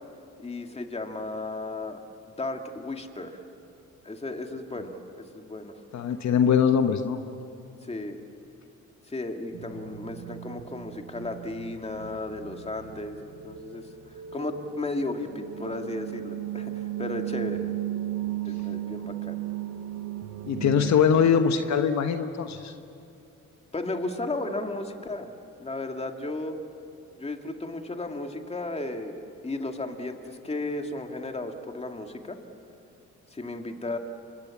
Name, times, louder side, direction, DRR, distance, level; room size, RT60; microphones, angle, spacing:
voice 1, 0.4-2.0 2.2-3.4 4.0-5.8 7.8-8.2 9.1-13.9 14.3-17.6 18.4-19.4 23.7-25.3 25.6-26.6 27.2-32.4 33.3-34.0, left 2 dB, 20° left, 4 dB, 2.3 m, -34 dB
voice 2, 5.9-7.2 20.4-22.7, left 7 dB, 65° left, 7 dB, 1.3 m, -22 dB
sound 1, 9.5-20.9, right 12 dB, 70° right, 1.1 m, -36 dB
29.5 x 25.0 x 7.3 m, 2.6 s
cardioid pair, 90°, 30 cm